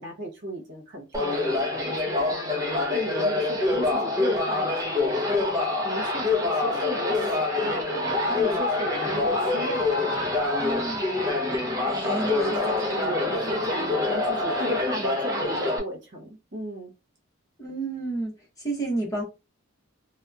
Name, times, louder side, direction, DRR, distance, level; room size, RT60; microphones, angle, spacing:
voice 1, 0.0-8.0 8.3-10.1 12.0-16.9, equal, 55° right, 0.9 m, -35 dB
sound 1, 1.1-15.8, left 2 dB, 15° right, 0.5 m, -26 dB
voice 2, 10.6-11.2 11.9-12.9 17.6-18.3 18.6-19.2, right 2 dB, 15° left, 0.8 m, -31 dB
2.8 x 2.1 x 2.3 m
head